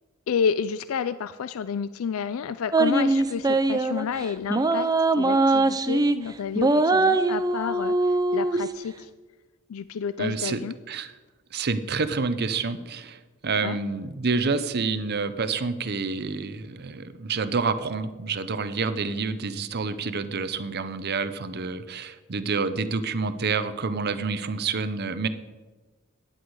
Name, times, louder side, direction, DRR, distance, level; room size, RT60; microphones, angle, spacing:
voice 1, 0.3-4.9 5.2-9.1 9.7-10.7 13.6-13.8, left 6 dB, 85° left, 14 dB, 0.4 m, -30 dB
sound 1, 2.7-4.1 4.5-6.2 6.6-8.6, right 2 dB, 20° right, 0.5 m, -22 dB
voice 2, 10.2-10.6 10.9-11.1 11.5-25.3, right 4 dB, 50° right, 12 dB, 0.7 m, -28 dB
14.5 x 10.0 x 4.8 m, 1.3 s
head